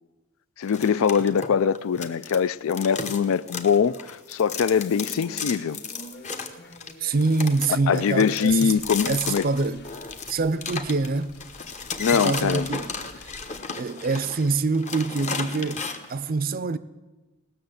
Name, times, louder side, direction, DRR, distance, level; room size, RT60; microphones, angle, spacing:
voice 1, 0.6-5.8 7.9-9.5 12.0-12.7, left 7 dB, 65° left, 0.3 m, -23 dB
sound 1, 0.7-2.4 2.7-16.1, left 5 dB, 30° left, 0.9 m, -34 dB
sound 2, 4.7-11.3 11.6-12.1, equal, 50° left, 1.9 m, -46 dB
voice 2, 7.0-8.8 9.1-9.9 10.3-11.4 12.1-12.9 13.2-13.3 13.8-16.8, right 3 dB, 40° right, 0.5 m, -25 dB
Fire, 8.5-13.6, left 2 dB, 80° left, 2.2 m, -49 dB
17.5 x 6.6 x 7.9 m
head